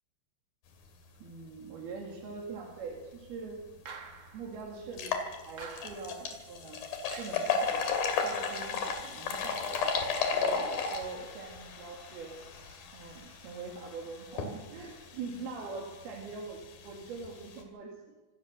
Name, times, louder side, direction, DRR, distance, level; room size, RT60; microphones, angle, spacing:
voice 1, 1.2-3.6 4.3-6.8 7.2-9.8 10.3-12.3 12.9-18.2, right 4 dB, 65° right, -1 dB, 4.1 m, -43 dB
sound 1, 3.6-3.7 4.1-4.2 4.8-17.6, left 5 dB, 60° left, 4.0 m, -35 dB
sound 2, 3.8-4.5 5.6-6.2 7.1-7.6, right 5 dB, 80° right, 1.0 m, -47 dB
26.0 x 16.0 x 6.7 m, 1.2 s
omnidirectional pair, 4.9 m